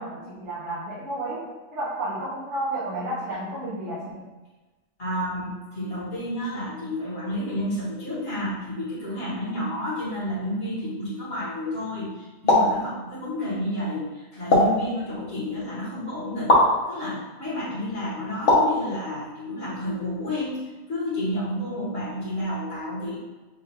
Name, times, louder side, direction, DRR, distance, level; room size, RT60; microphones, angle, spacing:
voice 1, 0.0-1.4 1.7-4.3, right 1 dB, 90° right, -9 dB, 1.5 m, -31 dB
voice 2, 5.0-16.6 16.9-20.6 20.9-23.2, left 1 dB, 55° left, -9 dB, 1.9 m, -30 dB
sound 1, 12.5-12.8 14.5-14.8 16.5-16.7 18.5-18.8, left 1 dB, 90° left, 1.4 m, -18 dB
7.1 x 2.5 x 2.9 m, 1.2 s
omnidirectional pair, 1.2 m